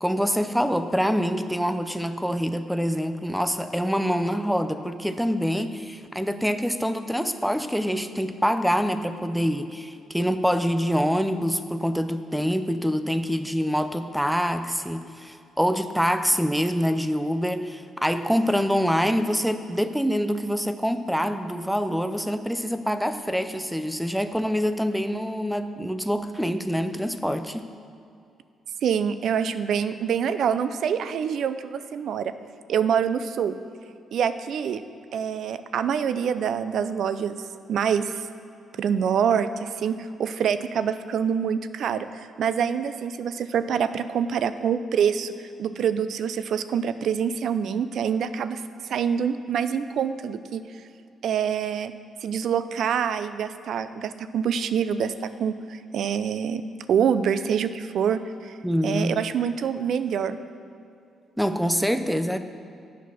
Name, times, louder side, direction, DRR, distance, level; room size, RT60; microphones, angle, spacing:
voice 1, 0.0-27.7 58.6-59.2 61.4-62.4, equal, ahead, 9 dB, 0.5 m, -25 dB
voice 2, 28.8-32.3 32.7-33.5 34.1-34.8 35.1-38.3 38.8-48.6 48.9-50.6 51.2-51.9 52.2-56.6 56.9-58.6 58.8-60.4, right 7 dB, 70° right, 12 dB, 0.4 m, -26 dB
8.4 x 6.0 x 6.1 m, 2.5 s
cardioid pair, 80°, 0 cm